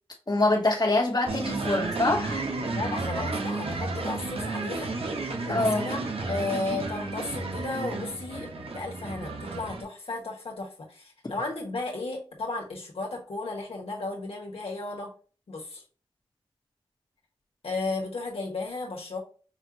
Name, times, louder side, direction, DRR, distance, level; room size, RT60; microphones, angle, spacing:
voice 1, 0.3-2.4 5.5-5.8, left 2 dB, 45° left, 1.2 m, -24 dB
sound 1, 1.3-9.8, right 3 dB, 85° right, 0.9 m, -32 dB
voice 2, 2.7-15.1 15.5-15.8 17.6-19.2, left 3 dB, 85° left, 1.4 m, -34 dB
5.7 x 2.5 x 2.9 m
cardioid pair, 45°, 10 cm